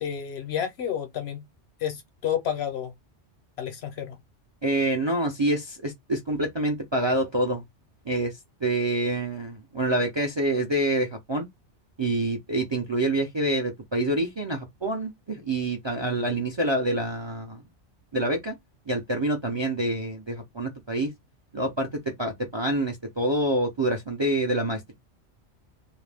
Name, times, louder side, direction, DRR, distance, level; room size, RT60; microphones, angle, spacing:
voice 1, 0.0-1.4 1.8-2.9 3.6-4.2, left 9 dB, 65° left, 0.9 m, -30 dB
voice 2, 4.6-7.6 8.1-8.3 8.6-11.5 12.0-17.6 18.1-18.5 18.9-21.1 21.5-24.9, right 1 dB, 35° right, 0.5 m, -27 dB
2.4 x 2.1 x 3.3 m
omnidirectional pair, 1.2 m